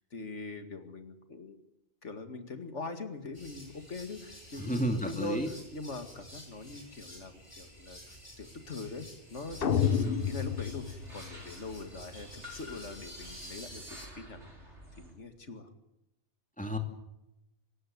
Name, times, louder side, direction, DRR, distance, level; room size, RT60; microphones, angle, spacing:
voice 1, 0.1-1.6 2.0-14.5 15.0-15.7, left 3 dB, 80° left, 8 dB, 2.4 m, -42 dB
sound 1, 3.3-14.1, equal, 25° left, 5.1 m, -50 dB
voice 2, 4.7-5.5 9.8-10.3 16.6-16.8, equal, 5° left, 5 dB, 2.6 m, -32 dB
sound 2, 9.4-15.1, equal, 75° right, 5.9 m, -50 dB
sound 3, 9.6-11.7, left 8 dB, 55° left, 1.3 m, -30 dB
25.0 x 14.5 x 9.7 m, 0.90 s
omnidirectional pair, 1.2 m